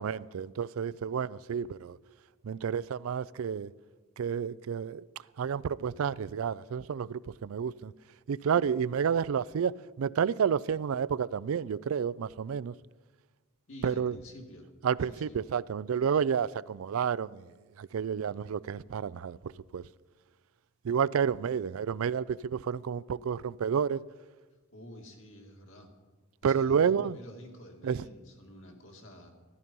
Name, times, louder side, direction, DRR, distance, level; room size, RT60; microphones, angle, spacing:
voice 1, 0.0-2.0 2.4-3.7 4.2-5.0 5.4-7.9 8.3-12.7 13.8-14.2 14.8-17.5 17.8-19.8 20.8-24.0 26.4-27.2 27.8-28.0, right 7 dB, 90° right, 0.4 m, -30 dB
voice 2, 13.7-14.7 15.0-15.4 24.7-25.9 26.4-29.3, equal, 70° left, 2.3 m, -49 dB
13.5 x 13.0 x 5.4 m
head